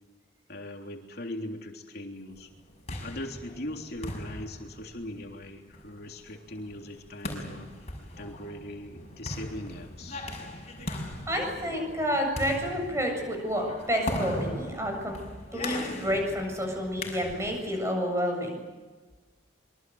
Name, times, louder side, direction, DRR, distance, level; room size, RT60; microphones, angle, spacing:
voice 1, 0.5-2.5 3.0-7.7 8.2-10.3, left 1 dB, 50° left, 2 dB, 3.4 m, -40 dB
sound 1, 2.5-17.7, left 1 dB, 35° left, 6.1 m, -39 dB
voice 2, 11.3-15.2 15.5-18.6, equal, 15° right, 2 dB, 7.4 m, -29 dB
25.5 x 24.0 x 8.0 m, 1.3 s
head